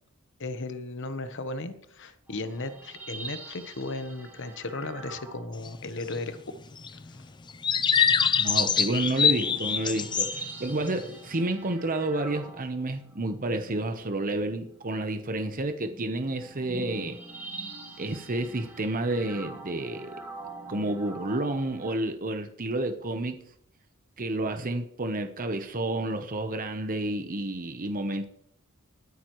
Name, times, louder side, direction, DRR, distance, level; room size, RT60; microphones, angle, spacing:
voice 1, 0.4-6.4 6.9-7.2, left 2 dB, 55° left, 1.1 m, -36 dB
sound 1, 2.3-6.2 8.5-21.9, right 3 dB, 10° right, 5.6 m, -45 dB
sound 2, 5.7-5.8 6.0-6.2 6.8-7.2 7.6-10.5 10.8-11.1, left 7 dB, 20° left, 0.4 m, -24 dB
voice 2, 8.4-17.2 18.0-20.2 20.7-23.4 24.2-28.3, right 2 dB, 40° right, 0.9 m, -30 dB
21.0 x 9.1 x 3.1 m
head